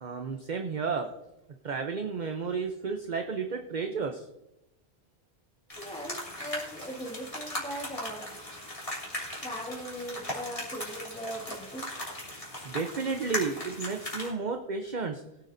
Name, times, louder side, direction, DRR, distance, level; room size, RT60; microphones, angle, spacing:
voice 1, 0.0-1.1 1.6-4.3 12.6-15.2, right 5 dB, 50° right, 4 dB, 0.9 m, -32 dB
sound 1, 5.7-14.3, left 1 dB, 30° left, 3.3 m, -38 dB
voice 2, 5.8-8.4 9.4-11.9, equal, 5° left, -2 dB, 1.5 m, -39 dB
21.0 x 9.2 x 2.7 m, 0.88 s
omnidirectional pair, 1.1 m